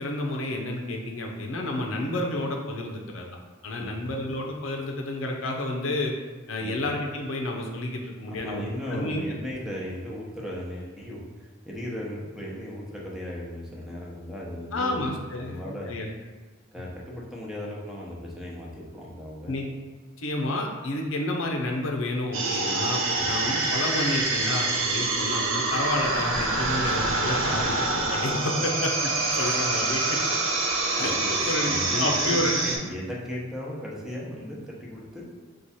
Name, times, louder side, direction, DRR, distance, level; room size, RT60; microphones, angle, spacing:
voice 1, 0.0-3.3 3.6-6.1 6.5-8.6 8.9-9.2 14.7-16.1 19.5-19.7 20.2-30.2 31.0-32.7, left 1 dB, 80° left, 1 dB, 0.6 m, -30 dB
voice 2, 3.8-4.1 6.6-6.8 8.3-15.9 16.7-19.6 23.1-23.4 25.1-25.3 29.3-29.6 31.0-35.3, left 1 dB, ahead, -5 dB, 0.7 m, -36 dB
sound 1, 22.3-32.8, right 3 dB, 85° right, 0.7 m, -26 dB
4.6 x 2.4 x 4.1 m, 1.3 s
head